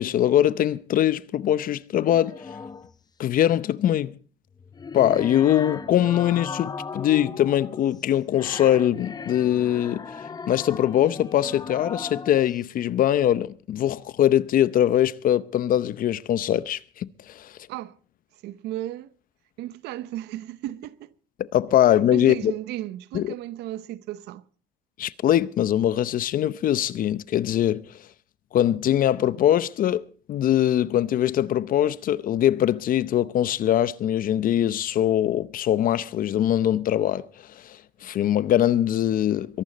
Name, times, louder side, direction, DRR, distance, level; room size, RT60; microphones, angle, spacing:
voice 1, 0.0-2.3 3.2-4.2 4.9-10.2 10.5-17.5 21.5-22.5 23.1-23.3 25.0-27.8 28.5-37.2 37.6-37.8 38.0-39.6, left 11 dB, 55° left, 0.7 m, -22 dB
sound 1, 2.0-3.0 4.5-12.6, left 5 dB, 25° left, 0.8 m, -37 dB
voice 2, 18.4-19.1 19.6-21.1 22.1-24.4, right 14 dB, 85° right, 0.8 m, -34 dB
23.0 x 11.5 x 4.1 m
cardioid pair, 110°, 17 cm